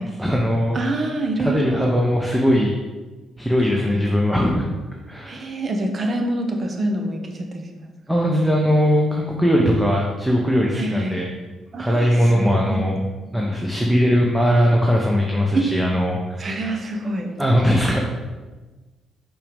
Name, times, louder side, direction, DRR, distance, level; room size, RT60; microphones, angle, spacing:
voice 1, 0.2-0.8 1.4-2.8 3.4-4.7 5.1-5.5 8.1-11.3 11.8-13.0 13.3-16.5 17.4-18.1, equal, 5° right, -2 dB, 0.8 m, -19 dB
voice 2, 0.7-1.8 3.6-4.0 5.3-7.9 10.7-11.3 11.7-12.1 12.4-12.9 15.5-15.8 16.4-17.3, right 2 dB, 40° right, 3 dB, 0.9 m, -26 dB
5.5 x 5.3 x 3.5 m, 1.2 s
cardioid pair, 90°, 0 cm